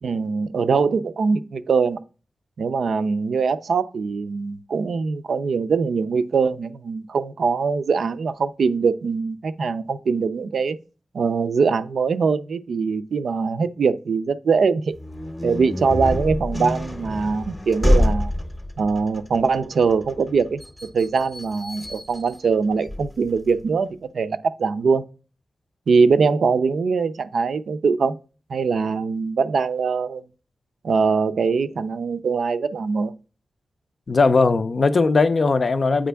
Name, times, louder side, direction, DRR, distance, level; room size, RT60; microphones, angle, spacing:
voice 1, 0.0-2.0 2.6-10.8 11.1-14.9 15.4-18.3 18.8-20.6 20.9-25.0 25.9-28.2 28.5-30.2 30.8-33.1, right 5 dB, 70° right, 0.5 m, -22 dB
sound 1, 14.9-23.6, left 1 dB, 10° left, 0.7 m, -27 dB
voice 2, 34.1-36.1, left 4 dB, 45° left, 0.4 m, -18 dB
8.6 x 5.1 x 3.4 m
wide cardioid pair, 175°, 0 cm